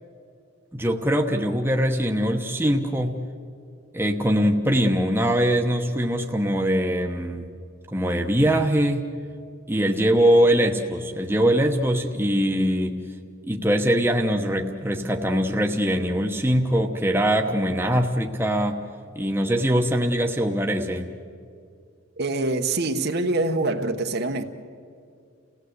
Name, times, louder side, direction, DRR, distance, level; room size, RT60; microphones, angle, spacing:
voice 1, 0.7-3.2 3.9-7.5 7.9-9.0 9.7-13.0 13.5-18.8 19.1-21.1, equal, 10° right, 2 dB, 1.1 m, -22 dB
voice 2, 22.2-24.4, right 2 dB, 50° right, 5 dB, 1.1 m, -25 dB
30.0 x 17.0 x 8.1 m, 2.4 s
head